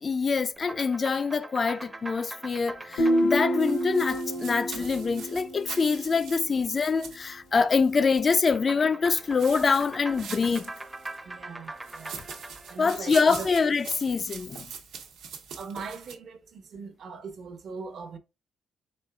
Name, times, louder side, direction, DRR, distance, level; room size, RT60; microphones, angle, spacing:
voice 1, 0.0-10.7 12.8-14.7, left 5 dB, 40° left, 0.3 m, -25 dB
sound 1, 0.6-5.2 8.6-14.0, right 2 dB, 15° right, 0.5 m, -43 dB
Guitar, 3.0-6.6, equal, 85° left, 0.9 m, -28 dB
sound 2, 3.6-8.3 9.1-11.2 11.8-16.1, right 6 dB, 85° right, 1.1 m, -43 dB
voice 2, 11.2-12.2 12.7-13.5 15.5-18.2, right 5 dB, 60° right, 0.8 m, -40 dB
4.3 x 3.8 x 2.3 m
cardioid pair, 90°, 0 cm